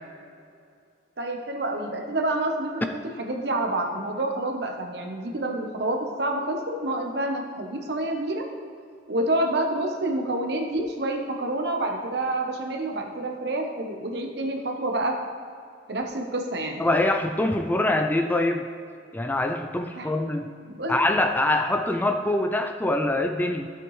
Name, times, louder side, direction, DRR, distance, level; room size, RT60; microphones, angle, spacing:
voice 1, 1.2-8.5 9.1-15.2 15.9-16.8 19.9-20.1 20.7-21.0, right 1 dB, 60° right, 3 dB, 1.0 m, -28 dB
voice 2, 16.8-18.7 19.1-20.5 20.9-23.7, left 1 dB, 10° left, 6 dB, 0.3 m, -24 dB
12.5 x 7.7 x 3.2 m, 2.4 s
head